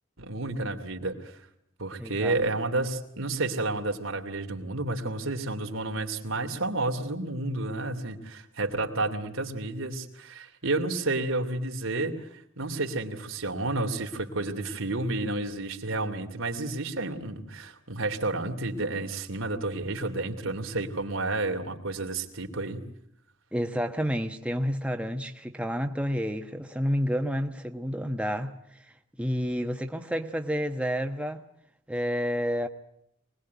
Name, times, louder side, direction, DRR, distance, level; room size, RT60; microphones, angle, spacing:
voice 1, 0.2-1.3 1.8-22.8, right 2 dB, 90° right, 2.8 m, -31 dB
voice 2, 2.0-2.4 23.5-31.4 31.9-32.7, equal, 5° right, 1.1 m, -30 dB
24.5 x 20.0 x 9.4 m
head